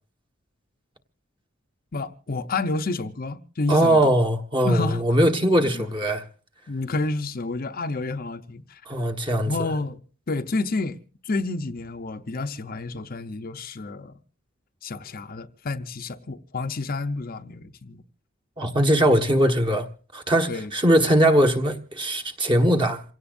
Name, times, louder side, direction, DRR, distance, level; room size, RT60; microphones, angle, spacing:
voice 1, 1.9-4.0 4.6-5.0 5.6-5.9 6.7-8.8 9.5-10.0 10.3-11.0 11.2-14.1 14.8-18.0 20.5-20.7, left 3 dB, 45° left, 0.7 m, -29 dB
voice 2, 3.7-6.2 8.9-9.5 18.6-19.9 20.1-23.0, right 1 dB, 25° right, 1.4 m, -20 dB
28.0 x 17.0 x 2.6 m
head